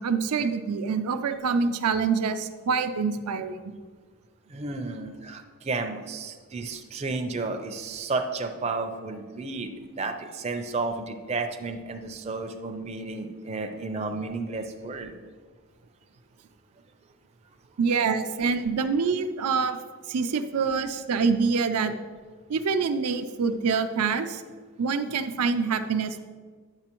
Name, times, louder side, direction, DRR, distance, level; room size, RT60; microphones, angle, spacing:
voice 1, 0.0-3.6 17.8-19.8 20.1-21.9 22.5-24.4 24.8-26.2, right 5 dB, 90° right, 8 dB, 0.5 m, -26 dB
voice 2, 4.5-15.2, right 3 dB, 30° right, 5 dB, 0.4 m, -32 dB
9.7 x 6.8 x 2.9 m, 1.5 s
head